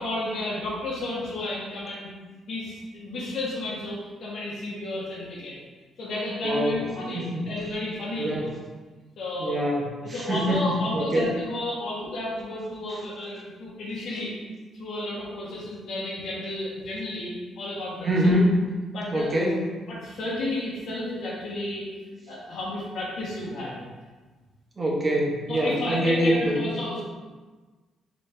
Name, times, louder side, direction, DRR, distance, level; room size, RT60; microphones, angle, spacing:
voice 1, 0.0-2.1 2.5-5.6 6.0-8.5 9.2-9.6 10.0-14.3 14.7-18.3 18.9-19.3 19.9-21.9 22.3-23.8 25.5-27.0, left 1 dB, 65° left, -7 dB, 1.1 m, -32 dB
voice 2, 6.4-6.7 7.1-7.5 8.2-8.5 9.4-11.3 18.0-18.6 19.1-19.6 24.8-26.5, equal, 30° right, -3 dB, 1.1 m, -24 dB
4.1 x 3.1 x 3.3 m, 1.3 s
cardioid pair, 90°, 0 cm